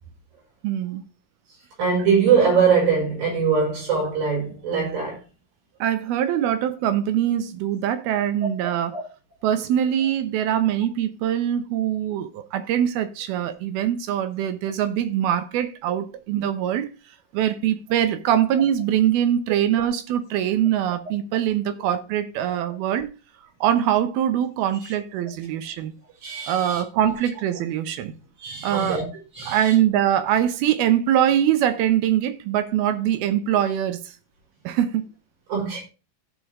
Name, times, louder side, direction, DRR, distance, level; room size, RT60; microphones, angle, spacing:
voice 1, 0.6-1.0 5.8-9.0 9.4-16.9 17.3-23.1 23.6-25.9 26.5-28.1 28.6-29.0 29.5-34.1 34.6-35.1, right 10 dB, 80° right, 2.8 m, -23 dB
voice 2, 1.8-5.2 8.9-9.0 24.8-24.9 26.2-26.8 28.4-29.1 29.3-29.7 35.5-35.8, right 6 dB, 65° right, 7.0 m, -22 dB
16.0 x 5.4 x 3.6 m
omnidirectional pair, 4.4 m